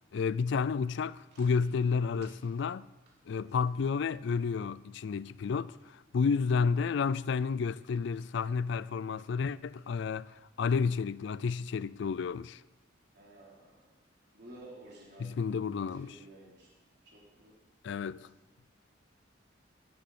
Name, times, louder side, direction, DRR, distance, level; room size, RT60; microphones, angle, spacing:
voice 1, 0.1-2.9 3.3-12.6 15.2-16.1 17.8-18.3, left 5 dB, 65° left, 0.4 m, -31 dB
voice 2, 3.4-3.8 13.1-13.9 14.3-15.6 15.9-17.6 18.0-18.2, right 1 dB, 60° right, 3.6 m, -54 dB
16.5 x 11.0 x 4.3 m
head